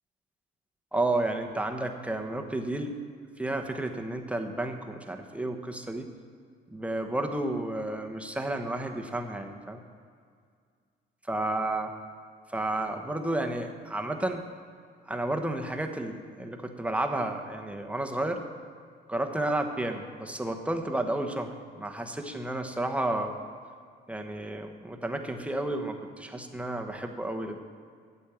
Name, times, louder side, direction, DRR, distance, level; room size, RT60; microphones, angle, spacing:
voice 1, 0.9-3.0 3.4-6.1 6.7-9.8 11.3-11.9 12.5-14.5 15.1-18.4 19.1-23.4 24.1-27.6, right 1 dB, 5° right, 3 dB, 1.2 m, -31 dB
9.2 x 8.6 x 7.1 m, 2.1 s
cardioid pair, 90°, 20 cm